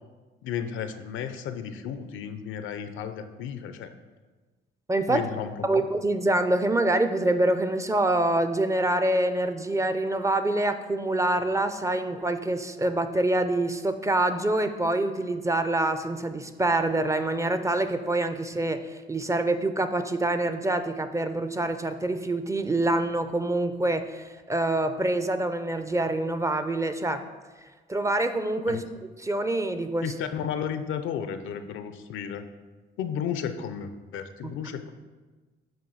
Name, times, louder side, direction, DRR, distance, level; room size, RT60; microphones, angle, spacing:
voice 1, 0.4-3.9 5.1-5.8 28.7-28.8 30.0-32.4 33.0-34.9, left 8 dB, 80° left, 9 dB, 0.5 m, -33 dB
voice 2, 4.9-5.2 5.6-27.2 27.9-28.8 29.2-30.1 34.4-34.5, right 2 dB, 15° right, 9 dB, 0.4 m, -26 dB
7.5 x 2.6 x 5.5 m, 1.3 s
cardioid pair, 90°, 20 cm